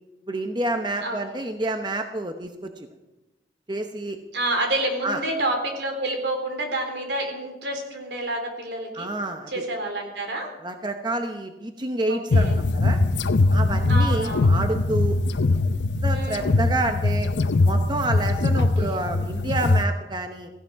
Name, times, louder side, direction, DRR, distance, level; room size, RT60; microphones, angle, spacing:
voice 1, 0.3-2.7 3.7-4.2 5.0-5.2 8.9-9.5 10.6-13.0 13.5-15.2 16.0-17.3 17.6-20.5, right 2 dB, 25° right, 6 dB, 0.9 m, -28 dB
voice 2, 4.3-9.1 9.5-10.5 12.1-12.5 13.9-14.6 16.1-16.5 18.6-19.0, right 1 dB, 80° right, 3 dB, 3.9 m, -29 dB
sound 1, 12.3-19.8, left 2 dB, 85° left, 0.6 m, -21 dB
17.5 x 16.0 x 4.7 m, 1.0 s
head